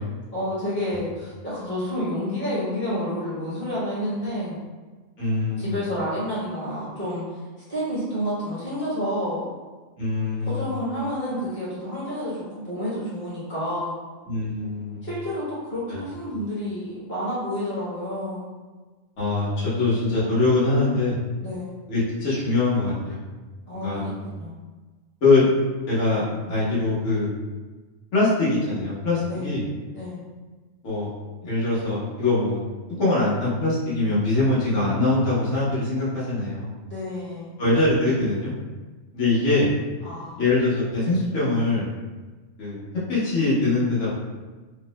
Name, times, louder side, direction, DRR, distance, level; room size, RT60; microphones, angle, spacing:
voice 1, 0.3-4.6 5.6-7.2 7.7-9.5 10.4-14.0 15.0-18.4 21.4-21.7 23.7-24.5 29.2-29.5 29.9-30.2 36.8-37.5 40.0-40.4, equal, 40° left, -10 dB, 1.2 m, -29 dB
voice 2, 5.2-5.7 10.0-10.7 14.2-15.1 15.9-16.0 19.2-21.2 21.9-23.2 23.7-24.1 25.2-25.5 25.9-27.3 28.1-29.6 30.8-31.1 31.4-32.6 33.0-36.7 37.6-38.5 39.1-39.7 40.4-41.9 42.6-42.8 43.1-44.1, left 2 dB, 70° left, -10 dB, 1.4 m, -23 dB
3.1 x 2.0 x 3.0 m, 1.3 s
omnidirectional pair, 1.3 m